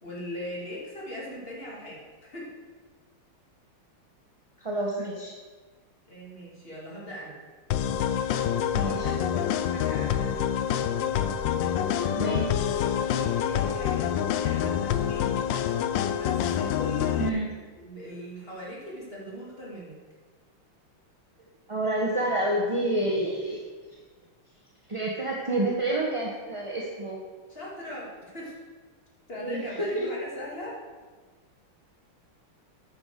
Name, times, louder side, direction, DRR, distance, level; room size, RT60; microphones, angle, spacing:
voice 1, 0.0-2.5 6.1-7.4 8.8-10.6 12.5-14.1 14.4-15.5 16.1-17.4 17.7-20.0 27.5-28.6 29.3-30.8, left 1 dB, 25° left, -5 dB, 2.7 m, -40 dB
voice 2, 4.6-5.3 8.7-9.1 12.2-12.7 17.2-17.6 21.7-23.6 24.9-27.2 29.4-30.1, right 1 dB, 25° right, -4 dB, 0.7 m, -28 dB
sound 1, 7.7-17.3, left 9 dB, 75° left, 1.2 m, -27 dB
9.5 x 6.0 x 6.6 m, 1.4 s
omnidirectional pair, 2.3 m